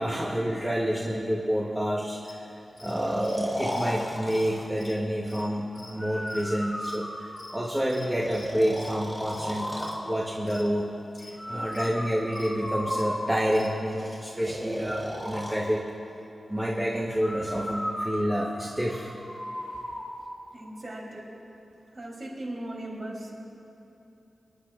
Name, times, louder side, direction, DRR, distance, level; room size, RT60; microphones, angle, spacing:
voice 1, 0.0-10.9 11.2-15.8 16.5-19.1, equal, 10° right, -4 dB, 1.0 m, -29 dB
sound 1, 2.2-13.7, left 2 dB, 65° left, 1.3 m, -49 dB
Breathing, 2.9-4.7 6.0-7.7 8.2-10.0 11.4-13.6 14.4-15.6 17.2-20.1, equal, 5° left, 2.6 m, -34 dB
voice 2, 20.5-21.2 21.9-23.3, right 1 dB, 45° right, -3 dB, 3.2 m, -38 dB
24.5 x 10.0 x 2.5 m, 2.9 s
wide cardioid pair, 80°, 0 cm